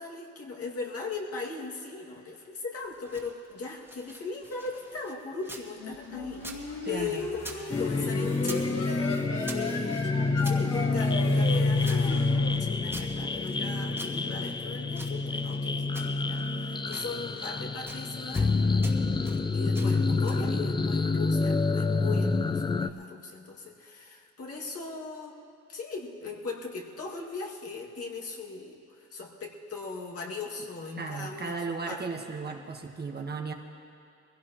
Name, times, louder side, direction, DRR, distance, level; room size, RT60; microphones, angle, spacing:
voice 1, 0.0-18.9 19.5-25.4 25.7-31.5 31.9-32.0, left 4 dB, 50° left, -2 dB, 2.2 m, -39 dB
sound 1, 2.8-5.7 6.0-7.6 7.9-8.7 9.0-10.6 11.1-13.6 13.9-15.6 15.9-16.5 16.8-17.6 17.9-18.5 18.8-19.4 19.7-20.5, right 1 dB, 5° right, 2.0 m, -46 dB
sound 2, 5.8-13.4, left 3 dB, 85° left, 2.1 m, -37 dB
voice 2, 6.8-7.3 31.0-33.5, right 4 dB, 35° right, 3 dB, 1.3 m, -35 dB
sound 3, 7.7-22.9, left 3 dB, 15° left, 0.4 m, -27 dB
22.0 x 16.5 x 3.0 m, 2.6 s
cardioid pair, 90°, 30 cm